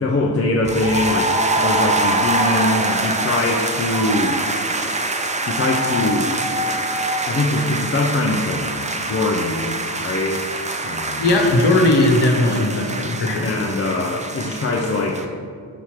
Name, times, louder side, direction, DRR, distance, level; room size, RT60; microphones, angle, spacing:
voice 1, 0.0-4.4 5.5-6.7 7.3-8.7 9.0-10.5 10.8-11.3 13.4-15.3, left 2 dB, 35° left, -2 dB, 0.5 m, -22 dB
sound 1, 0.6-15.2, right 2 dB, 20° right, 0.3 m, -24 dB
voice 2, 11.2-13.5, left 2 dB, 70° left, 2 dB, 1.1 m, -17 dB
6.9 x 3.1 x 5.9 m, 2.2 s
wide cardioid pair, 105°, 43 cm